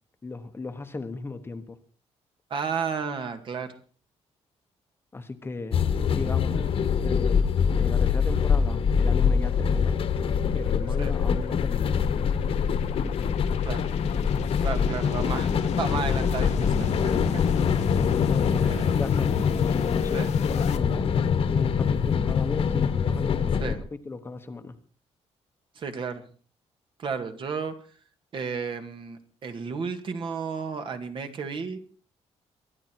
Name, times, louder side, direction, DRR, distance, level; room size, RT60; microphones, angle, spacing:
voice 1, 0.2-1.8 5.1-5.8 6.1-6.7 7.0-7.5 7.8-10.0 10.5-12.0 18.3-21.1 21.5-23.7 24.0-24.7, left 3 dB, 20° left, 8 dB, 1.2 m, -36 dB
voice 2, 2.5-3.7 11.0-11.1 13.6-13.8 14.6-15.5 15.8-17.6 18.6-19.0 20.1-20.3 23.6-23.8 25.8-26.2 27.0-27.7 28.3-31.8, right 5 dB, 45° right, 7 dB, 2.1 m, -32 dB
sound 1, 5.7-23.8, left 6 dB, 55° left, 1.6 m, -24 dB
sound 2, 7.3-20.8, left 10 dB, 75° left, 1.2 m, -40 dB
23.0 x 11.0 x 4.6 m, 0.41 s
cardioid pair, 150°, 12 cm